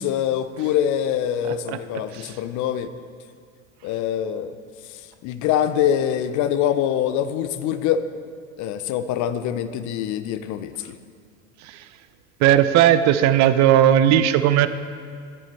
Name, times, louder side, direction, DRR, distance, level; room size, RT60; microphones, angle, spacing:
voice 1, 0.0-2.9 3.8-4.5 4.9-8.0 8.6-11.0, left 10 dB, 45° left, 11 dB, 0.6 m, -24 dB
voice 2, 1.4-1.8 2.1-2.4 11.6-11.9 12.4-14.7, right 11 dB, 45° right, 12 dB, 0.6 m, -17 dB
12.0 x 9.1 x 4.2 m, 2.1 s
hypercardioid pair, 80°, 41 cm